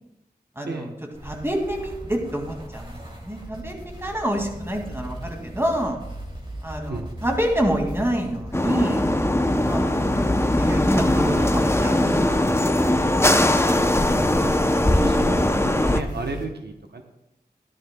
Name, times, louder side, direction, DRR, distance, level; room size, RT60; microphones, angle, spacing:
voice 1, 0.6-0.9 1.2-6.0 6.6-9.1 9.7-10.3 10.6-12.2 14.0-14.9, equal, 15° right, 1 dB, 2.3 m, -27 dB
sound 1, 1.1-16.5, right 1 dB, 30° right, 2.7 m, -38 dB
sound 2, 8.5-16.0, left 1 dB, 15° left, 0.6 m, -20 dB
voice 2, 14.1-17.0, right 3 dB, 90° right, 4 dB, 1.0 m, -34 dB
14.5 x 11.5 x 2.3 m, 0.86 s
wide cardioid pair, 50°, 16 cm